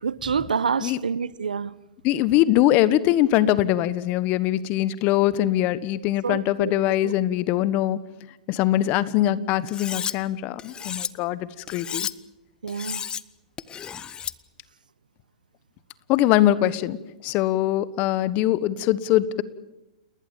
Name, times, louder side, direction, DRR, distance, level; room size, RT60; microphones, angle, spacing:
voice 1, 0.0-1.7 6.2-6.7 7.0-7.1 12.6-13.1, right 6 dB, 85° right, 1.0 m, -27 dB
voice 2, 2.0-8.0 8.5-12.1 16.1-17.0 17.2-19.4, left 13 dB, 35° left, 1.3 m, -22 dB
Cutlery silverware, 9.7-10.1 10.6-11.1 11.7-12.1 12.7-13.2 13.6-14.3, left 8 dB, 20° left, 0.8 m, -32 dB
29.5 x 20.0 x 7.3 m
hypercardioid pair, 120°, 4 cm